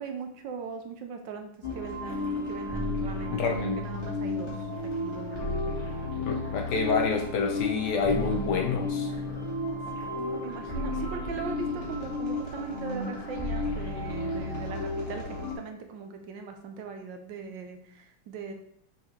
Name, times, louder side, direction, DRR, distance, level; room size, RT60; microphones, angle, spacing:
voice 1, 0.0-4.5 5.0-5.7 9.9-18.5, right 5 dB, 70° right, 5 dB, 1.3 m, -40 dB
sound 1, 1.6-15.6, left 2 dB, 35° left, 1.9 m, -33 dB
voice 2, 3.3-3.8 6.2-9.1, left 5 dB, 70° left, 3 dB, 1.1 m, -28 dB
6.3 x 5.0 x 3.2 m, 0.70 s
omnidirectional pair, 2.2 m